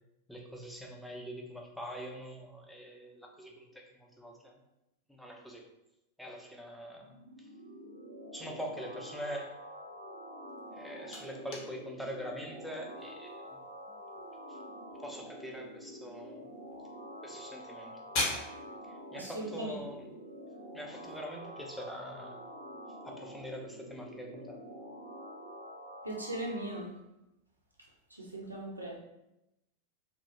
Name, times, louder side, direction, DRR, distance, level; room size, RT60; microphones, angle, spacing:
voice 1, 0.3-4.5 5.1-5.7 6.2-7.5 8.3-9.5 10.7-13.4 14.5-14.6 15.0-16.5 17.2-18.0 19.1-20.0 20.7-22.4 23.0-24.6, equal, ahead, 0 dB, 0.4 m, -43 dB
sound 1, 7.0-26.9, equal, 90° left, 0.8 m, -47 dB
sound 2, 10.5-21.2, left 2 dB, 45° left, 0.6 m, -44 dB
voice 2, 19.1-19.8 26.0-26.9 28.1-29.0, right 1 dB, 85° right, -2 dB, 0.5 m, -38 dB
2.4 x 2.1 x 2.8 m, 0.91 s
figure-of-eight pair, 90°, 0 cm